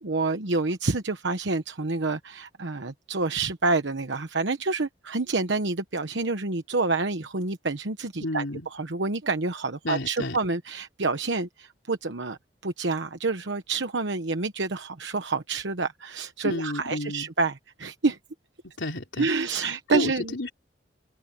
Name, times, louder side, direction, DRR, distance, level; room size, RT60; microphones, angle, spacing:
voice 1, 0.0-8.4 8.7-12.4 12.6-18.2 19.2-20.3, right 3 dB, 75° right, 1.1 m, -28 dB
voice 2, 8.2-8.7 9.8-10.4 16.4-17.3 18.8-19.3 19.6-20.5, left 1 dB, 85° left, 3.5 m, -31 dB
open air
head